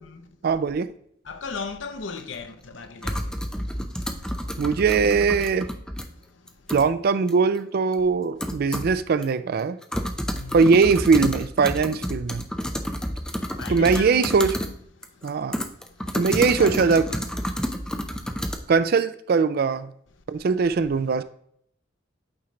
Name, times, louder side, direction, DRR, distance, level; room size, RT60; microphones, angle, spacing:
voice 1, 0.4-0.9 4.6-5.7 6.7-9.8 10.5-12.4 13.7-14.5 15.2-15.6 16.2-17.1 18.7-19.9 20.3-21.2, right 5 dB, 55° right, 0.4 m, -21 dB
voice 2, 1.3-3.1 10.3-10.6 13.6-14.7 16.3-17.2, left 4 dB, 75° left, 0.7 m, -36 dB
sound 1, 2.2-2.3 3.0-6.1 6.5-6.9 7.3-7.4 7.9-8.0 8.4-9.0 9.2-9.3 9.6-14.7 15.0-18.6, equal, 5° left, 0.5 m, -30 dB
8.6 x 3.2 x 3.8 m
head